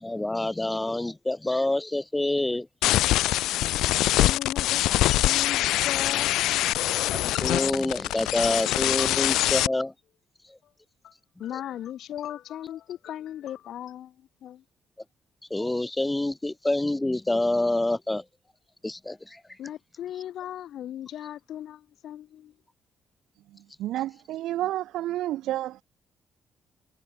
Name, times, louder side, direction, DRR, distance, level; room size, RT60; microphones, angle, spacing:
voice 1, 0.0-2.7 7.1-9.9 15.5-18.2 18.8-19.4, left 2 dB, 10° left, 0.4 m, -27 dB
sound 1, 2.8-9.7, left 15 dB, 90° left, 0.6 m, -24 dB
voice 2, 3.6-6.4 11.0-11.1 11.4-14.6 19.6-22.5, left 11 dB, 75° left, 4.3 m, -37 dB
voice 3, 23.8-25.8, right 14 dB, 85° right, 1.3 m, -30 dB
cardioid pair, 90°, 0 cm